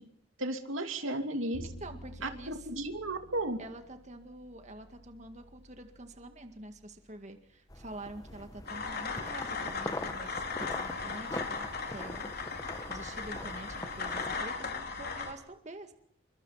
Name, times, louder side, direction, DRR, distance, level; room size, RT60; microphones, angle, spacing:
voice 1, 0.4-1.7 2.2-3.6, right 1 dB, 80° right, 6 dB, 2.8 m, -34 dB
Bowed string instrument, 1.5-7.7, equal, 80° left, 2.4 m, -52 dB
voice 2, 1.8-2.7 3.6-12.3 12.9-15.9, right 1 dB, 35° right, 6 dB, 2.1 m, -47 dB
sound 1, 7.7-14.4, left 1 dB, 20° left, 1.4 m, -43 dB
sound 2, 8.7-15.3, left 4 dB, 50° left, 4.1 m, -37 dB
29.0 x 24.5 x 5.8 m, 0.65 s
head